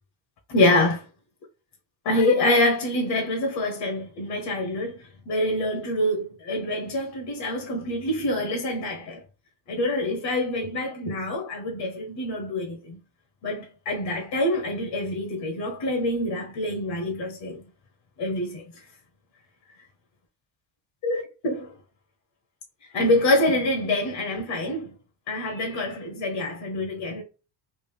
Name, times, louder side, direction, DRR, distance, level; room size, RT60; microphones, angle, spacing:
voice 1, 0.5-1.0 2.0-5.0 5.3-9.2 9.7-13.0 13.4-17.6 18.2-18.6 21.0-21.7 22.9-24.9 25.3-27.2, left 1 dB, 60° left, 1.0 m, -25 dB
3.4 x 2.5 x 3.3 m
cardioid pair, 125°, 43 cm